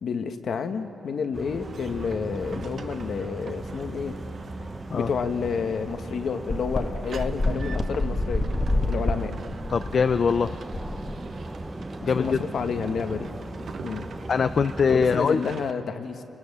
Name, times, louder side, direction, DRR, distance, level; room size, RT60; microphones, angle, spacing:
voice 1, 0.0-4.2 4.9-8.5 8.8-9.3 12.1-13.3 13.8-14.1 14.9-16.2, left 6 dB, 65° left, 6 dB, 1.5 m, -30 dB
sound 1, 1.3-15.3, right 1 dB, 10° right, 0.9 m, -38 dB
sound 2, 1.6-15.7, right 6 dB, 60° right, 1.2 m, -43 dB
sound 3, 5.5-5.6 5.9-6.0 6.5-11.7, left 2 dB, 30° left, 1.5 m, -28 dB
voice 2, 9.7-10.5 12.0-12.4 14.3-15.4, left 6 dB, 50° left, 11 dB, 0.5 m, -22 dB
29.5 x 24.0 x 6.8 m, 2.7 s
wide cardioid pair, 125°, 0 cm